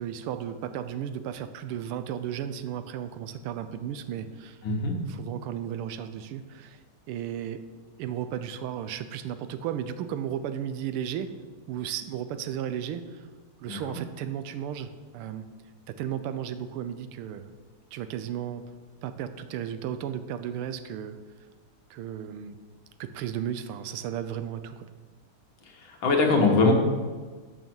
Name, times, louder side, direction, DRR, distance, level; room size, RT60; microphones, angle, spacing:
voice 1, 0.0-4.6 5.1-6.8 7.1-7.6 8.0-11.4 11.7-13.2 13.6-15.4 15.9-17.5 17.9-18.6 19.0-21.2 21.9-22.6 23.0-24.9, right 9 dB, 85° right, 11 dB, 1.5 m, -34 dB
voice 2, 4.6-4.9 13.6-14.0 25.9-26.7, left 3 dB, 70° left, 1 dB, 2.0 m, -22 dB
6.5 x 6.3 x 6.1 m, 1.4 s
omnidirectional pair, 2.4 m